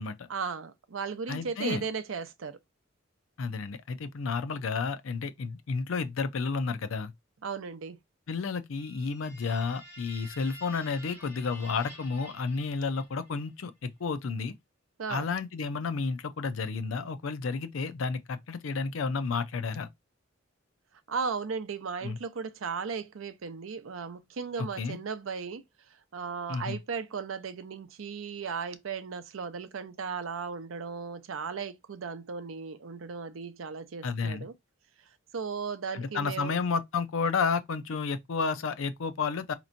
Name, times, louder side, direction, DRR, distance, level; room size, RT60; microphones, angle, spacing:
voice 1, 0.3-2.6 7.4-8.0 15.0-15.3 21.1-25.6 26.1-34.5 35.3-36.6, right 5 dB, 85° right, 0.5 m, -36 dB
voice 2, 1.3-1.8 3.4-7.1 8.3-14.5 15.1-19.9 22.0-22.2 24.8-25.0 26.5-26.8 34.0-34.5 35.9-39.5, left 4 dB, 85° left, 0.5 m, -31 dB
sound 1, 8.7-13.4, equal, 15° right, 2.9 m, -50 dB
4.2 x 2.9 x 2.5 m
head